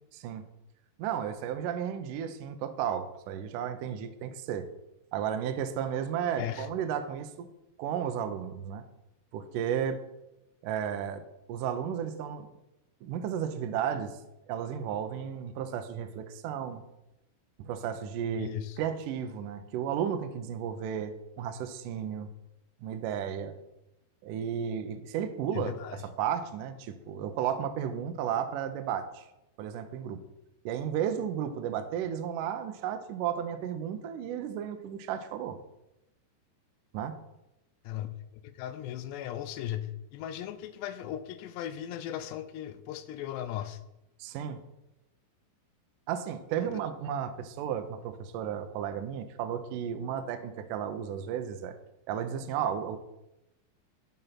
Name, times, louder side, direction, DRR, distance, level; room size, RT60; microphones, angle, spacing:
voice 1, 0.1-0.4 1.0-4.7 5.1-7.5 7.8-8.8 9.3-10.0 10.6-11.2 11.5-12.5 13.0-14.1 14.5-16.8 17.6-22.3 22.8-23.5 24.2-29.3 29.6-30.2 30.7-35.6 36.9-37.1 44.2-44.6 46.1-51.8 52.1-53.0, right 8 dB, 85° right, 8 dB, 1.9 m, -33 dB
voice 2, 18.4-18.8 25.5-26.0 37.9-38.1 38.4-43.8, left 11 dB, 85° left, 11 dB, 2.8 m, -37 dB
10.5 x 5.5 x 5.9 m, 0.90 s
omnidirectional pair, 4.9 m